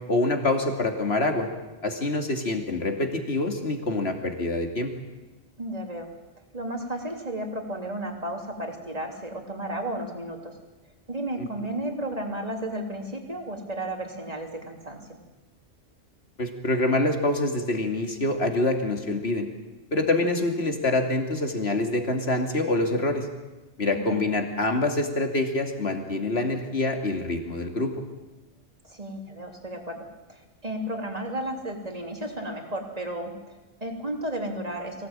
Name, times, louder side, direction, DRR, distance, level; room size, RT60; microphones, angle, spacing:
voice 1, 0.0-1.5 1.8-4.9 16.4-19.5 19.9-23.3 23.8-27.9, left 2 dB, 65° left, 4 dB, 2.9 m, -26 dB
voice 2, 5.6-6.1 6.5-10.6 11.1-15.2 23.9-24.2 28.8-30.0 30.3-35.1, right 1 dB, 35° right, 2 dB, 3.3 m, -33 dB
24.5 x 17.5 x 9.0 m, 1.1 s
omnidirectional pair, 1.2 m